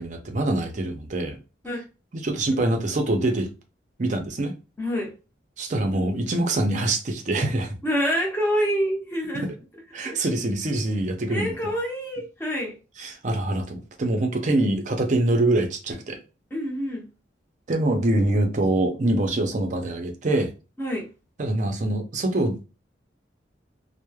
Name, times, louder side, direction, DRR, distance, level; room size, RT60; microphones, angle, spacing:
voice 1, 0.0-1.4 2.1-3.5 4.0-4.6 5.6-7.8 9.3-9.5 9.9-11.5 13.0-16.2 17.7-20.5 21.4-22.7, right 2 dB, 40° right, 0.5 m, -24 dB
voice 2, 4.8-5.1 7.8-9.5 10.0-10.2 11.3-12.7 16.5-17.1 20.8-21.1, equal, 10° left, 0.7 m, -26 dB
3.0 x 2.1 x 2.2 m
head